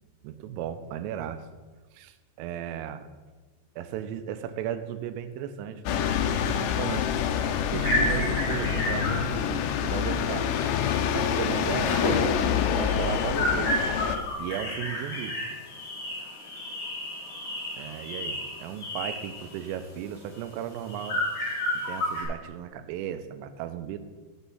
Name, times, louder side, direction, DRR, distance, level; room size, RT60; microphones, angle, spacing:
voice 1, 0.2-1.5 1.9-3.1 3.8-7.1 7.7-10.5 11.1-13.7 14.4-15.4 17.8-21.2 21.8-24.0, right 10 dB, 90° right, 10 dB, 3.3 m, -35 dB
sound 1, 5.9-14.2, left 8 dB, 85° left, 2.5 m, -26 dB
sound 2, 6.4-10.8 11.0-11.3 11.6-22.2, left 1 dB, 45° left, 3.3 m, -32 dB
8.9 x 6.3 x 5.4 m, 1.3 s
omnidirectional pair, 5.7 m